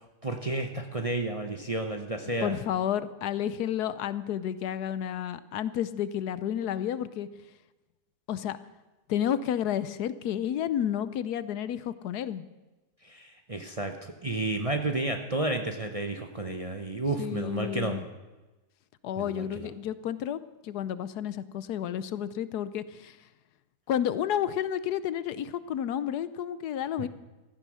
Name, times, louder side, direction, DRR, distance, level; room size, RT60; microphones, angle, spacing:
voice 1, 0.2-2.5 13.0-18.0 19.2-19.7, right 2 dB, 30° right, 5 dB, 0.8 m, -31 dB
voice 2, 2.4-7.3 8.3-8.6 9.1-12.4 17.2-18.1 19.0-23.2 23.9-27.1, left 10 dB, 75° left, 15 dB, 1.2 m, -31 dB
15.5 x 12.5 x 6.4 m, 1.1 s
omnidirectional pair, 1.8 m